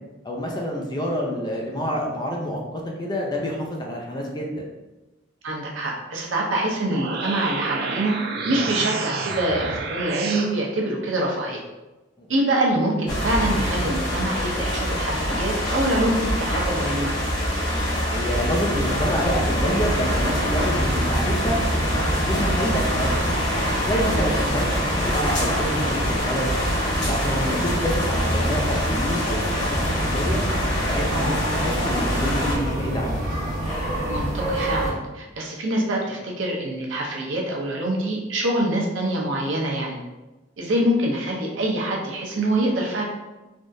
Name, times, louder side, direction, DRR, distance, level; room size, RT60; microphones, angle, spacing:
voice 1, 0.2-4.5 12.2-12.3 18.1-21.6 22.2-23.3 23.8-26.5 27.1-30.4 30.9-33.3, equal, 25° left, -1 dB, 0.5 m, -27 dB
voice 2, 5.4-8.1 8.5-11.6 12.3-17.1 24.1-24.3 31.1-31.3 34.1-40.0 40.6-43.1, right 1 dB, 85° right, -1 dB, 0.7 m, -25 dB
sound 1, 6.7-10.5, right 4 dB, 55° right, 0.4 m, -29 dB
sound 2, 13.1-32.6, equal, 70° left, 1.5 m, -25 dB
sound 3, 18.7-34.9, right 1 dB, 40° left, 1.4 m, -27 dB
3.4 x 2.4 x 2.6 m, 1.1 s
head